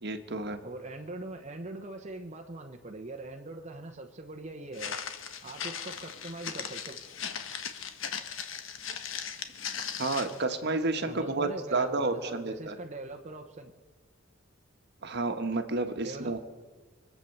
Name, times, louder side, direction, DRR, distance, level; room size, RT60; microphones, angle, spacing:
voice 1, 0.0-0.6 9.8-12.8 15.0-16.4, right 3 dB, 55° right, 7 dB, 1.3 m, -31 dB
voice 2, 0.6-5.0 5.4-7.0 11.1-13.7 16.0-16.4, right 2 dB, 35° right, 3 dB, 0.9 m, -41 dB
Walk footsteps, 4.7-10.4, left 7 dB, 70° left, 1.3 m, -38 dB
24.5 x 8.4 x 6.7 m, 1.4 s
head